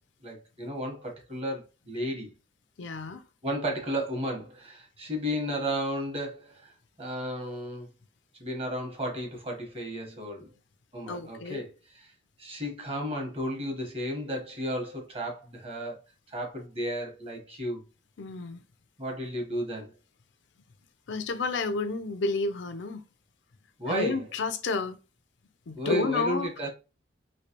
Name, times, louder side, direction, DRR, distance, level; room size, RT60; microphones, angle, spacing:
voice 1, 0.2-2.3 3.4-6.7 7.0-7.9 8.4-10.5 10.9-12.1 12.4-16.0 16.3-17.8 19.0-19.9 23.8-24.2 25.7-26.7, equal, 35° right, 1.2 m, -33 dB
voice 2, 2.8-3.2 11.0-11.6 18.2-18.6 21.1-23.0 23.9-25.0 25.7-26.5, left 3 dB, 90° left, 0.5 m, -30 dB
3.2 x 2.8 x 2.9 m
head